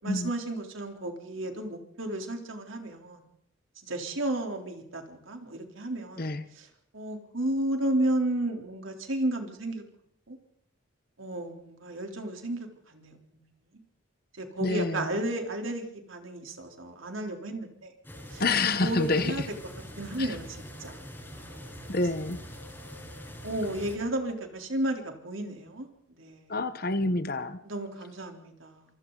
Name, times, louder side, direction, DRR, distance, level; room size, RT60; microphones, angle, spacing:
voice 1, 0.0-3.2 3.8-6.3 6.6-6.7 6.9-9.8 10.3-10.4 11.2-13.4 14.4-17.9 18.3-18.4 18.8-19.4 20.0-20.5 20.8-21.0 21.3-21.9 23.4-25.9 26.2-26.5 27.6-28.9, right 1 dB, 80° right, 3 dB, 3.8 m, -33 dB
voice 2, 14.6-15.1 18.4-19.5 20.2-20.4 21.9-22.4 26.5-27.6, left 2 dB, 50° left, 11 dB, 1.3 m, -28 dB
sound 1, 18.0-24.0, equal, 10° left, 6.7 m, -44 dB
27.0 x 26.0 x 4.1 m, 0.76 s
head